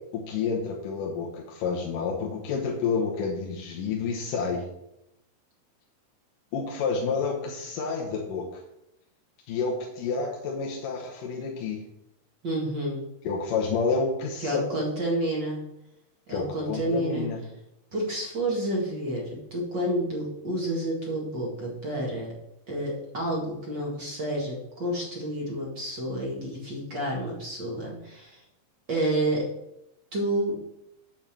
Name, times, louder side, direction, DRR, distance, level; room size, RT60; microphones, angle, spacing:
voice 1, 0.1-4.7 6.5-8.6 9.5-11.8 13.2-14.6 16.3-17.4, left 5 dB, 75° left, -2 dB, 2.7 m, -29 dB
voice 2, 12.4-13.0 14.4-15.6 16.3-17.3 17.9-22.3 22.7-28.4 28.9-29.5 30.1-30.6, right 1 dB, 35° right, -3 dB, 2.2 m, -29 dB
8.8 x 4.5 x 7.4 m, 0.84 s
omnidirectional pair, 3.9 m